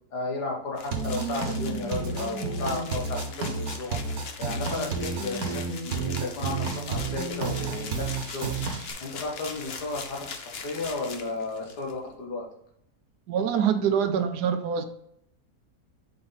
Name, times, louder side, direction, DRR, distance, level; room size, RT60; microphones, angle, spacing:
voice 1, 0.1-8.5 9.0-12.5, left 3 dB, 90° left, 0 dB, 2.1 m, -34 dB
sound 1, 0.7-11.9, left 5 dB, 50° left, 0.8 m, -41 dB
sound 2, 0.9-8.9, right 4 dB, 70° right, 1.5 m, -31 dB
voice 2, 13.3-14.8, right 7 dB, 85° right, 8 dB, 1.3 m, -25 dB
7.3 x 4.4 x 4.0 m, 0.73 s
omnidirectional pair, 1.7 m